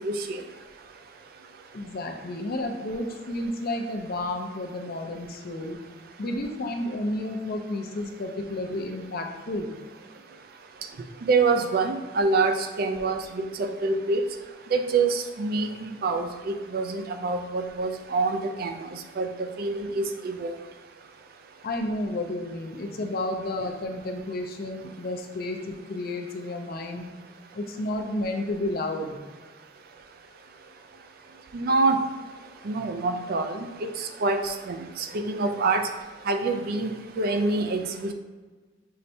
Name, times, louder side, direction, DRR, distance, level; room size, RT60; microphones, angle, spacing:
voice 1, 0.0-0.4 11.3-14.2 14.7-18.7 19.2-20.5 31.5-32.0 32.7-33.6 34.0-35.8 36.3-38.1, right 3 dB, 55° right, 6 dB, 0.4 m, -26 dB
voice 2, 1.7-5.8 6.2-9.7 21.6-27.1 27.5-29.2, left 1 dB, 55° left, 4 dB, 0.5 m, -31 dB
5.6 x 3.2 x 2.7 m, 1.4 s
head